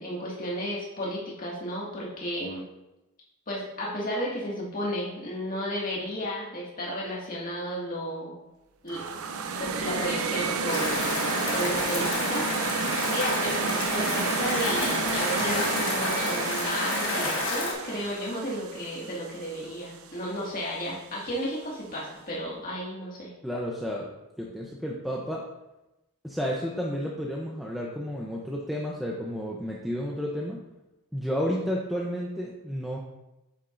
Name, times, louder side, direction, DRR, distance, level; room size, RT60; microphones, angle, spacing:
voice 1, 0.0-2.6 3.5-8.3 8.8-9.0 9.6-11.0 11.5-12.5 13.1-23.3, equal, 40° left, -5 dB, 2.0 m, -33 dB
sound 1, 8.9-19.9, right 5 dB, 75° right, 0.7 m, -31 dB
sound 2, 10.7-17.7, left 3 dB, 55° left, 1.6 m, -30 dB
voice 2, 23.4-24.1 24.4-25.4 26.2-30.6 31.1-33.0, equal, ahead, -4 dB, 0.7 m, -31 dB
8.5 x 7.3 x 2.6 m, 0.96 s
head